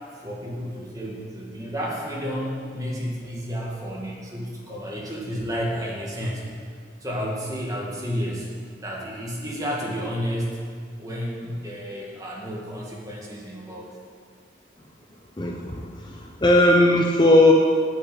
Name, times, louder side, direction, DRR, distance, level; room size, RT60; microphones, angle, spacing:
voice 1, 0.2-6.4 7.0-8.5 8.8-10.7 11.0-13.9, equal, 20° right, -3 dB, 2.0 m, -31 dB
voice 2, 15.4-17.5, left 1 dB, 25° left, 0 dB, 0.8 m, -18 dB
9.4 x 6.5 x 8.7 m, 2.1 s
head